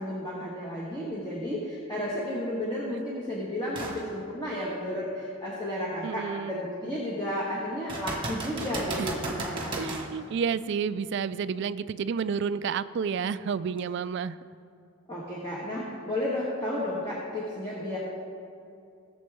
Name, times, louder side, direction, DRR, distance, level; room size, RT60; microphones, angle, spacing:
voice 1, 0.0-9.9 15.1-18.0, left 1 dB, 20° left, -7 dB, 1.5 m, -32 dB
sound 1, 3.7-4.0 4.6-4.7 7.9-10.1 13.8-13.9, right 2 dB, 25° right, 1.4 m, -34 dB
voice 2, 6.0-6.5 9.0-9.1 9.7-14.4, right 6 dB, 55° right, 15 dB, 0.3 m, -30 dB
17.5 x 7.0 x 3.5 m, 2.5 s
head